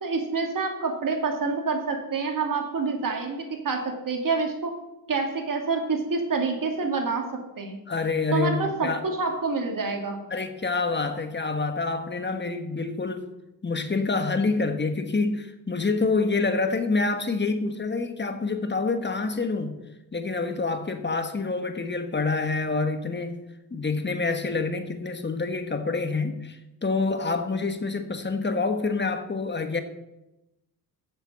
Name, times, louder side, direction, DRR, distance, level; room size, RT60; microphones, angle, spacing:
voice 1, 0.0-4.7 5.1-7.2 7.6-7.8 8.3-10.2, right 4 dB, 50° right, 3 dB, 2.4 m, -27 dB
voice 2, 7.9-9.0 10.3-13.2 13.6-19.8 20.1-23.4 23.7-29.8, left 3 dB, 25° left, 8 dB, 1.4 m, -27 dB
7.6 x 6.8 x 6.9 m, 0.95 s
supercardioid pair, 55°, 42 cm